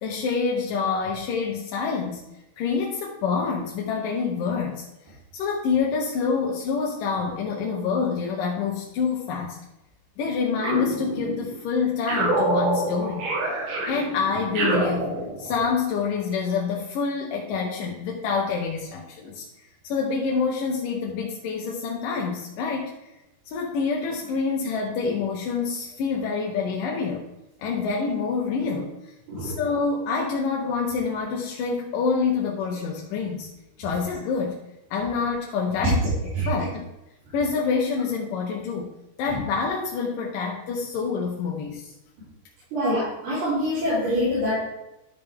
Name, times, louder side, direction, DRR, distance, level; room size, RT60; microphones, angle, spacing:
voice 1, 0.0-2.2 2.6-4.9 5.3-9.6 10.2-13.6 13.9-15.1 15.4-19.5 19.8-22.9 23.5-27.3 27.6-28.9 29.4-33.5 33.8-34.6 34.9-36.9 37.3-38.9 39.2-41.9, left 5 dB, 75° left, -1 dB, 2.1 m, -27 dB
sound 1, 10.6-11.6 12.1-15.7, right 2 dB, 90° right, 3.9 m, -27 dB
voice 2, 42.7-44.7, equal, 70° right, -13 dB, 5.6 m, -25 dB
12.5 x 5.1 x 3.5 m, 0.95 s
omnidirectional pair, 4.7 m